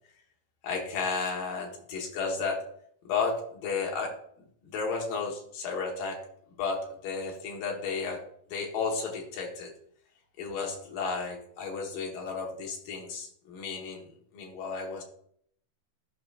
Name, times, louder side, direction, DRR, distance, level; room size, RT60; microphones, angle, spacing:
voice 1, 0.6-2.6 3.1-4.2 4.6-6.2 6.6-8.2 8.5-9.7 10.4-15.0, left 4 dB, 80° left, 0 dB, 2.9 m, -33 dB
13.5 x 5.7 x 2.4 m, 0.64 s
omnidirectional pair, 3.9 m